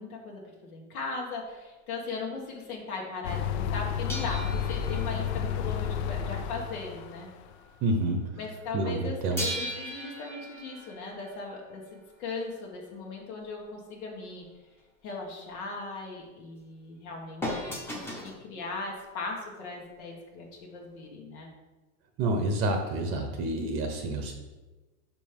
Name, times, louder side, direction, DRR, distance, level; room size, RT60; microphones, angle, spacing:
voice 1, 0.0-7.3 8.4-14.4 15.0-21.5, left 3 dB, 85° left, -1 dB, 1.8 m, -38 dB
sound 1, 3.2-7.5, left 8 dB, 55° left, 0.5 m, -31 dB
sound 2, 4.1-7.2 7.5-7.7 9.4-12.1 17.4-18.4 19.4-19.5, equal, 5° left, 0.7 m, -38 dB
voice 2, 7.8-8.2 8.7-9.4 22.2-24.3, right 2 dB, 30° right, 4 dB, 0.7 m, -28 dB
5.3 x 5.2 x 5.3 m, 1.2 s
supercardioid pair, 155°, 41 cm